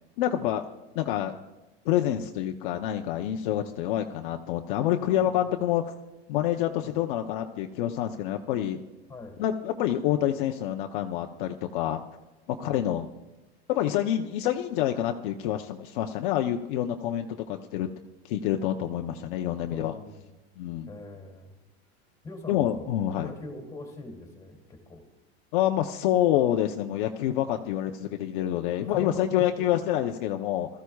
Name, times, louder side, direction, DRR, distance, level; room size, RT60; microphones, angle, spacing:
voice 1, 0.2-0.6 0.9-1.3 1.8-5.9 6.3-8.8 9.4-12.0 12.5-13.0 13.7-17.9 18.2-19.9 20.6-20.9 22.5-23.3 25.5-30.7, left 11 dB, 55° left, 4 dB, 0.8 m, -27 dB
voice 2, 5.1-5.6 6.8-7.0 9.1-9.4 12.6-12.8 19.7-20.3 20.9-21.5 22.2-25.1 27.5-27.6 28.8-29.8, left 2 dB, 10° left, 2 dB, 2.6 m, -43 dB
21.0 x 14.5 x 2.4 m, 1.1 s
supercardioid pair, 160°, 32 cm